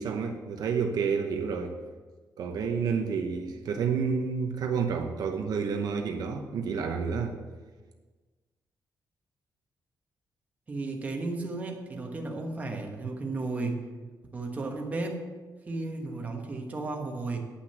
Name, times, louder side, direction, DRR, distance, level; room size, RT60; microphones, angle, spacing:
voice 1, 0.0-1.7 2.4-7.3, right 6 dB, 65° right, 4 dB, 0.9 m, -29 dB
voice 2, 10.7-13.8 14.3-15.2 15.7-17.5, right 3 dB, 20° right, 1 dB, 1.2 m, -34 dB
9.8 x 6.0 x 6.8 m, 1.3 s
wide cardioid pair, 180°, 7 cm